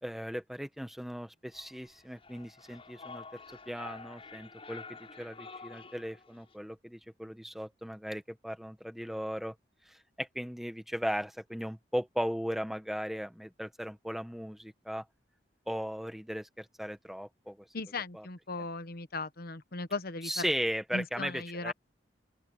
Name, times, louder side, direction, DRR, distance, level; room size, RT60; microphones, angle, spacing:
voice 1, 0.0-3.4 3.7-9.5 9.9-15.0 15.7-17.7 18.1-18.3 20.2-21.7, equal, ahead, 1.4 m, -37 dB
sound 1, 1.5-6.5, left 4 dB, 35° left, 7.3 m, -49 dB
voice 2, 17.7-20.4 20.9-21.7, left 3 dB, 55° left, 1.2 m, -37 dB
open air
head